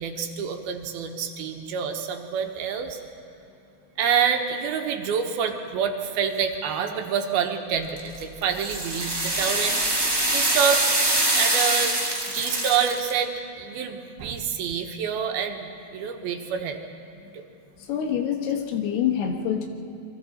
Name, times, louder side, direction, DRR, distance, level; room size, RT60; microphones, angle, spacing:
voice 1, 0.0-3.0 4.0-9.8 10.3-10.8 11.3-11.9 12.3-16.8 17.3-17.5, right 7 dB, 75° right, 4 dB, 2.9 m, -27 dB
sound 1, 8.0-13.1, right 1 dB, 20° right, 0.6 m, -24 dB
voice 2, 17.9-19.7, left 8 dB, 75° left, 3 dB, 3.4 m, -26 dB
28.0 x 22.5 x 4.2 m, 2.8 s
omnidirectional pair, 4.6 m